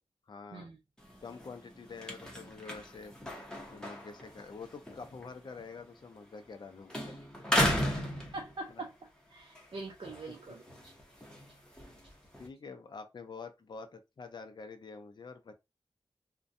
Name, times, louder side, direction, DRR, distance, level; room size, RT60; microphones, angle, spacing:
voice 1, 0.3-0.7 1.2-7.1 7.5-8.3 8.7-8.9 10.3-10.4 12.4-15.6, left 4 dB, 50° left, 0.5 m, -47 dB
sound 1, 1.0-6.6 6.9-8.9 9.4-12.5, left 1 dB, 10° left, 0.8 m, -36 dB
voice 2, 7.6-8.0 8.3-8.9 9.3-10.9 11.5-11.6 12.0-12.1, right 2 dB, 60° right, 0.5 m, -44 dB
2.5 x 2.2 x 2.5 m
wide cardioid pair, 100°, 10 cm